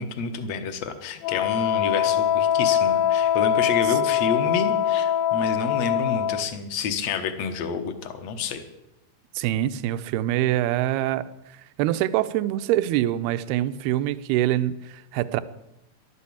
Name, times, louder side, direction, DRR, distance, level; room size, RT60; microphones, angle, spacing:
voice 1, 0.0-8.6, left 5 dB, 65° left, 7 dB, 1.7 m, -29 dB
Wind instrument woodwind instrument, 1.2-6.5, left 9 dB, 80° left, 2.2 m, -23 dB
voice 2, 9.4-15.4, right 13 dB, 80° right, 13 dB, 2.5 m, -25 dB
13.0 x 11.5 x 8.6 m, 0.91 s
omnidirectional pair, 4.7 m